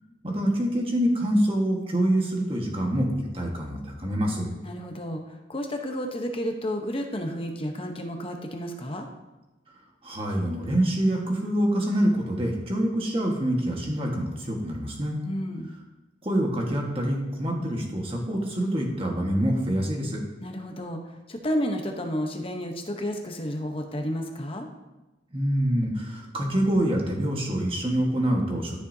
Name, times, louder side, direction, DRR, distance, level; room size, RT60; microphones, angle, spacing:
voice 1, 0.2-4.5 10.0-15.2 16.2-20.2 25.3-28.8, right 1 dB, 30° right, 0 dB, 1.5 m, -26 dB
voice 2, 4.6-9.1 15.3-15.8 20.4-24.7, equal, 30° left, 3 dB, 0.9 m, -31 dB
13.0 x 6.8 x 2.8 m, 1.1 s
head